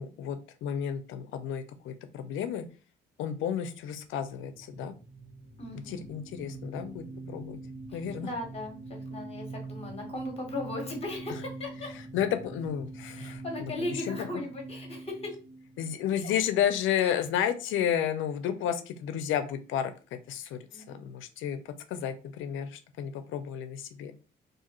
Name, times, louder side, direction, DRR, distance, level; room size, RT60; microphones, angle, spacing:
voice 1, 0.0-2.6 3.2-4.9 5.9-7.6 7.9-8.3 12.1-13.7 14.1-14.3 15.8-21.6 21.9-24.1, left 9 dB, 80° left, 10 dB, 0.4 m, -32 dB
sound 1, 4.1-16.5, right 2 dB, 60° right, 1.2 m, -44 dB
voice 2, 5.6-6.0 7.9-11.9 13.2-15.3 16.1-16.3 17.0-17.1 20.7-21.1, left 1 dB, 30° left, 2 dB, 1.2 m, -38 dB
2.6 x 2.4 x 2.9 m, 0.35 s
cardioid pair, 90°, 20 cm